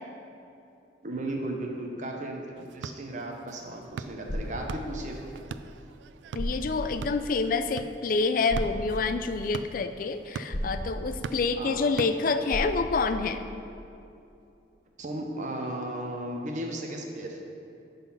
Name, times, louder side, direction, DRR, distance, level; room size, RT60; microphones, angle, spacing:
voice 1, 1.0-2.4 2.7-5.3 11.6-11.8 15.0-17.4, right 1 dB, 45° right, 2 dB, 0.8 m, -35 dB
sound 1, 2.6-12.7, right 5 dB, 85° right, 0.3 m, -43 dB
sound 2, 3.9-4.7 6.0-6.1 6.4-6.8 8.5-8.8 10.5-10.9 12.5-12.9, equal, 80° left, 1.5 m, -32 dB
voice 2, 6.3-13.4, left 4 dB, 50° left, 9 dB, 0.4 m, -27 dB
10.0 x 4.1 x 5.6 m, 2.7 s
head